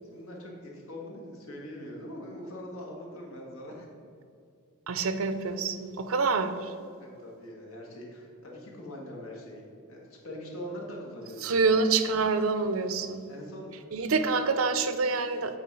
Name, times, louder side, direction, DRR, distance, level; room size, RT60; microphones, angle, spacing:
voice 1, 0.1-3.9 7.0-9.6 9.9-11.7 12.9-13.0 13.3-13.8 14.1-14.2, left 1 dB, 75° left, -1 dB, 1.5 m, -42 dB
voice 2, 4.9-6.7 11.4-13.2 13.9-15.6, right 4 dB, 70° right, 10 dB, 0.5 m, -26 dB
8.1 x 4.2 x 4.6 m, 2.5 s
head